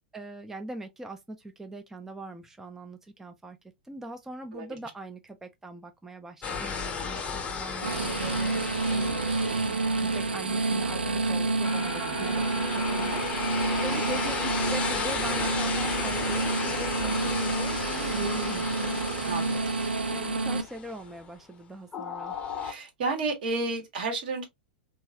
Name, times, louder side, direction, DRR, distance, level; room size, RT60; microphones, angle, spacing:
voice 1, 0.0-3.6 3.8-9.2 10.0-19.0 19.7-22.4, right 2 dB, 5° right, 0.4 m, -41 dB
sound 1, 6.4-10.8 11.6-21.3 21.9-22.7, left 6 dB, 25° left, 0.7 m, -34 dB
sound 2, 7.8-20.6, right 3 dB, 90° right, 0.4 m, -29 dB
voice 2, 19.2-19.6 22.6-24.4, right 3 dB, 65° right, 1.2 m, -31 dB
3.0 x 2.4 x 2.6 m
hypercardioid pair, 100°, 5 cm